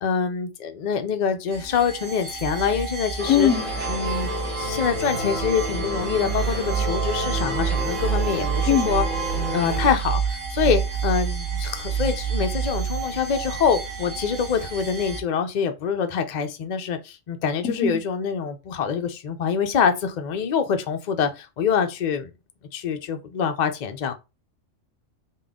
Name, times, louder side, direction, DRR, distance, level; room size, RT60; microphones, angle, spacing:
voice 1, 0.0-3.5 3.9-4.3 4.6-9.0 9.5-22.3 22.7-24.1, left 6 dB, 60° left, 0.4 m, -25 dB
sound 1, 1.5-15.2, right 6 dB, 45° right, 0.8 m, -28 dB
sound 2, 3.2-9.9, right 1 dB, 25° right, 1.3 m, -30 dB
voice 2, 3.3-3.6 8.7-8.9 17.6-18.0, left 8 dB, 85° left, 1.1 m, -20 dB
3.7 x 2.2 x 3.5 m
omnidirectional pair, 1.3 m